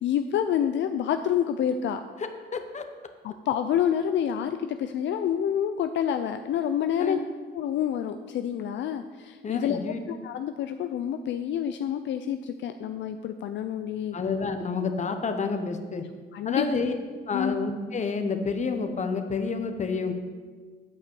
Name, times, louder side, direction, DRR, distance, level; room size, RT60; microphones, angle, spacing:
voice 1, 0.0-2.0 3.2-7.2 7.5-9.8 10.1-14.2 16.3-16.7 17.3-17.6, left 9 dB, 70° left, 8 dB, 0.5 m, -28 dB
voice 2, 2.5-2.8 7.0-7.2 9.4-10.0 14.1-16.0 16.4-16.9 17.3-20.1, left 4 dB, 35° left, 7 dB, 1.0 m, -29 dB
9.1 x 5.1 x 7.0 m, 1.5 s
cardioid pair, 90°, 20 cm